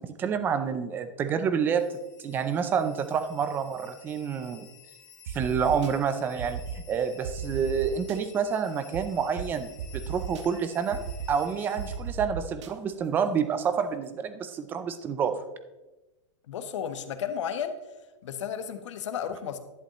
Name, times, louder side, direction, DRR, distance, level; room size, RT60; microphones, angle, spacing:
voice 1, 0.0-1.8 2.2-4.7 5.3-11.0 11.3-15.5, right 7 dB, 10° right, 10 dB, 0.4 m, -28 dB
sound 1, 1.7-12.0, left 7 dB, 50° left, 2.5 m, -53 dB
sound 2, 5.3-5.9 6.4-6.8 7.2-8.2 8.9-9.0 9.4-9.5 9.8-10.4 10.9-11.3 11.8-12.7, right 7 dB, 65° right, 1.0 m, -35 dB
voice 2, 16.5-17.8 18.2-19.6, left 8 dB, 65° left, 9 dB, 1.1 m, -33 dB
11.5 x 10.0 x 3.0 m, 1.1 s
supercardioid pair, 170°, 16 cm